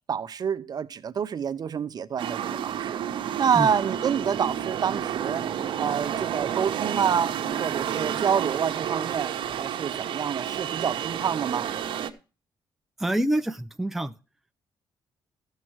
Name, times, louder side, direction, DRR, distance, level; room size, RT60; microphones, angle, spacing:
voice 1, 0.1-3.0 3.4-5.4 5.8-7.3 7.6-11.7, right 7 dB, 50° right, 0.7 m, -27 dB
sound 1, 2.2-12.1, right 9 dB, 70° right, 0.9 m, -30 dB
voice 2, 13.0-14.1, right 1 dB, 5° right, 0.5 m, -26 dB
13.0 x 7.5 x 4.6 m
cardioid pair, 100°, 9 cm